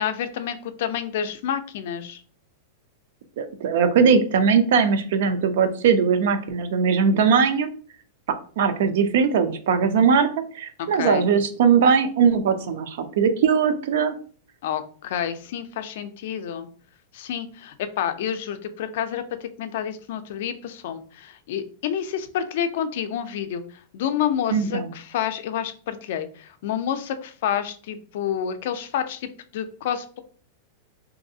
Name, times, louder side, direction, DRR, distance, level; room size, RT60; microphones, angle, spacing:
voice 1, 0.0-2.2 10.8-11.3 14.6-16.7 17.1-23.6 23.9-30.2, left 9 dB, 55° left, 9 dB, 0.4 m, -29 dB
voice 2, 3.4-7.7 8.3-10.3 10.5-14.2 24.5-24.9, right 6 dB, 60° right, 9 dB, 0.4 m, -20 dB
3.1 x 2.6 x 2.6 m, 0.43 s
supercardioid pair, 170°, 0 cm